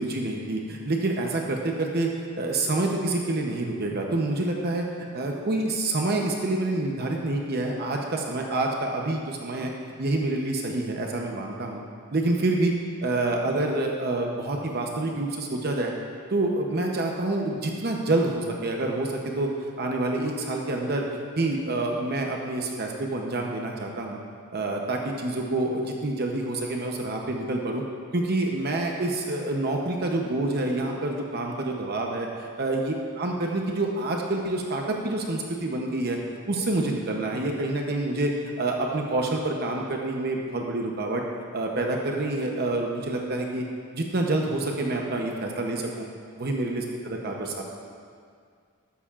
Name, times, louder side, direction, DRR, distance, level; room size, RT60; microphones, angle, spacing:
voice 1, 0.0-4.8 5.1-9.7 10.0-11.8 12.1-12.7 13.0-15.9 16.3-19.5 19.8-21.1 21.4-24.2 24.5-27.8 28.1-36.2 36.5-41.2 41.5-43.6 43.9-46.0 46.4-47.6, right 2 dB, 45° right, 1 dB, 0.8 m, -27 dB
13.0 x 13.0 x 2.5 m, 2.2 s
head